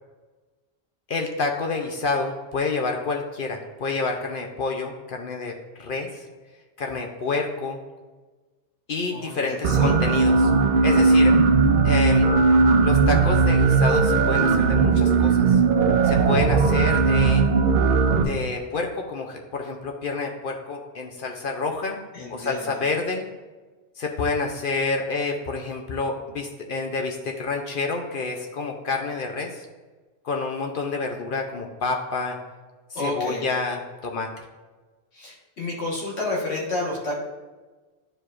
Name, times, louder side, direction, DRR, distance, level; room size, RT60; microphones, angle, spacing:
voice 1, 1.1-5.5 5.8-6.2 6.8-7.8 8.9-10.5 10.8-11.3 11.8-12.3 12.8-15.6 16.0-17.4 18.2-22.0 22.3-23.3 24.0-29.7 30.2-32.4 32.9-34.3, left 3 dB, 60° left, 2 dB, 0.8 m, -28 dB
voice 2, 9.1-10.0 22.1-22.8 33.0-33.4 35.1-37.2, left 2 dB, 90° left, -3 dB, 1.8 m, -30 dB
sound 1, 9.6-18.2, right 4 dB, 60° right, 0.7 m, -18 dB
9.9 x 4.7 x 2.5 m, 1.3 s
omnidirectional pair, 1.1 m